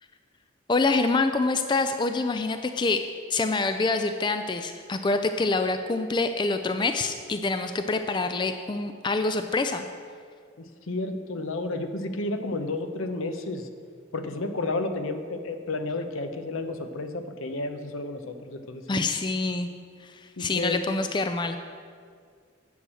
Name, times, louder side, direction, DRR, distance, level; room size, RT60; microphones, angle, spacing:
voice 1, 0.7-9.9 18.9-19.7 20.0-21.6, left 3 dB, 20° left, 8 dB, 0.3 m, -26 dB
voice 2, 10.6-13.7 14.1-19.1 20.4-20.8, left 2 dB, 85° left, 7 dB, 0.8 m, -32 dB
9.3 x 6.3 x 7.6 m, 2.1 s
head